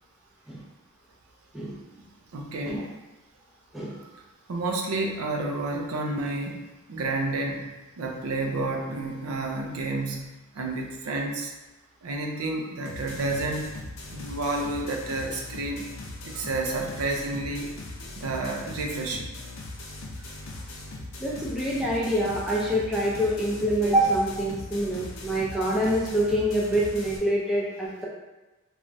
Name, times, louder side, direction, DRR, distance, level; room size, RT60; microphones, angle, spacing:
voice 1, 2.3-2.9 4.5-6.6 6.9-10.3 10.5-11.5 12.0-13.7 14.1-15.9 16.2-17.7 18.2-19.3, right 2 dB, 85° right, 1 dB, 0.4 m, -30 dB
sound 1, 12.9-27.2, left 2 dB, 60° left, 0.5 m, -40 dB
voice 2, 21.2-28.1, right 1 dB, ahead, -6 dB, 0.4 m, -26 dB
3.1 x 2.3 x 2.6 m, 1.1 s
head